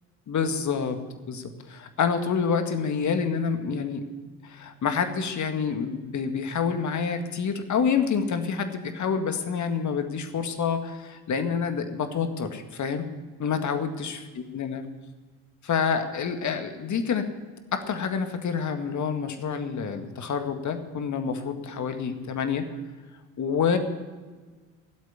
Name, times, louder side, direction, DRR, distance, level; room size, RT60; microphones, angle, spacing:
voice 1, 0.3-1.0 1.3-4.0 4.4-13.1 13.4-14.2 14.5-14.9 15.6-17.3 17.7-22.7 23.4-23.8, left 6 dB, 45° left, 7 dB, 1.9 m, -27 dB
17.0 x 8.4 x 9.7 m, 1.4 s
hypercardioid pair, 55°, 42 cm